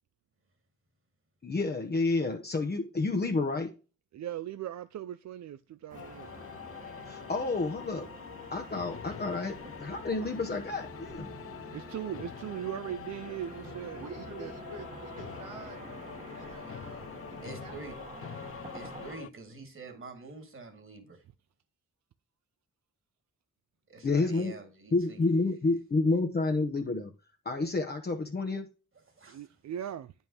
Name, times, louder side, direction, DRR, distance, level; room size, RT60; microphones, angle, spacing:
voice 1, 1.4-3.7 7.0-8.1 8.5-11.4 24.0-24.5 24.9-27.1 27.4-28.7, left 3 dB, 30° left, 0.9 m, -29 dB
voice 2, 4.1-6.3 11.7-14.5 29.3-30.1, right 11 dB, 60° right, 0.4 m, -39 dB
sound 1, 5.9-19.3, left 9 dB, 50° left, 0.4 m, -45 dB
Car passing by / Traffic noise roadway noise, 5.9-19.2, right 3 dB, 25° right, 1.3 m, -47 dB
voice 3, 13.9-15.9 16.3-17.7 18.0-18.2, right 3 dB, 85° right, 1.4 m, -48 dB
voice 4, 17.4-17.9 18.7-21.2 23.9-25.2 29.2-29.4, right 3 dB, 45° right, 2.2 m, -46 dB
9.2 x 5.5 x 2.9 m
cardioid pair, 65°, 30 cm